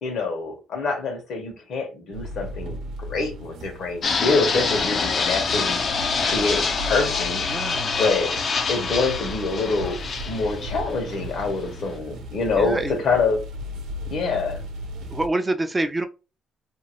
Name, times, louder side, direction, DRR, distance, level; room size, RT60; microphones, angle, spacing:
voice 1, 0.0-5.8 6.2-8.3 8.7-10.0 10.3-13.4 14.1-14.6, left 3 dB, 70° left, 1.2 m, -26 dB
sound 1, 2.1-15.3, equal, 90° right, 0.7 m, -36 dB
Fixed-wing aircraft airplane, 4.0-11.9, left 5 dB, 55° left, 0.5 m, -26 dB
voice 2, 7.5-7.9 12.6-12.9 15.1-16.1, right 2 dB, 20° right, 0.4 m, -26 dB
2.8 x 2.3 x 3.0 m
cardioid pair, 90°, 0 cm